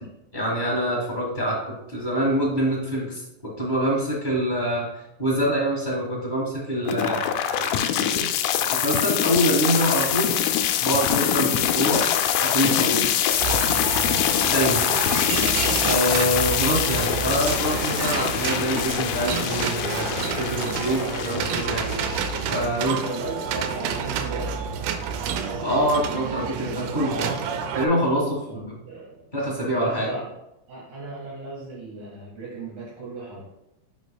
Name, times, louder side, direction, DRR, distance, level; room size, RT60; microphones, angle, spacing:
voice 1, 0.3-1.6 1.9-3.2 3.6-4.9 5.2-10.3 10.8-12.0 12.4-13.0 14.4-14.9 15.8-21.8 22.4-23.0 25.6-27.4 27.7-28.4 29.3-30.1, equal, 25° left, -4 dB, 1.0 m, -25 dB
sound 1, 6.9-22.9, left 10 dB, 90° left, 2.1 m, -24 dB
sound 2, 13.4-27.9, right 7 dB, 90° right, 2.1 m, -29 dB
voice 2, 23.0-24.6 28.5-29.3 29.7-30.3 30.7-33.4, right 3 dB, 70° right, -7 dB, 3.1 m, -36 dB
10.0 x 5.2 x 2.3 m, 0.87 s
omnidirectional pair, 3.6 m